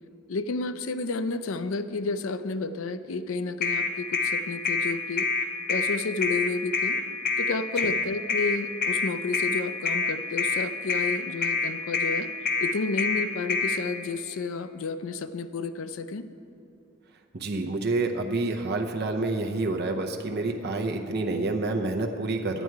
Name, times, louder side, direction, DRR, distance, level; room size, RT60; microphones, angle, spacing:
voice 1, 0.3-5.3 5.7-7.0 7.4-12.3 12.6-16.2, left 3 dB, 85° left, 12 dB, 0.5 m, -31 dB
sound 1, 3.6-13.8, left 4 dB, 45° left, 1.0 m, -26 dB
voice 2, 17.3-22.6, right 2 dB, 55° right, 3 dB, 0.7 m, -28 dB
11.5 x 9.0 x 4.6 m, 2.7 s
head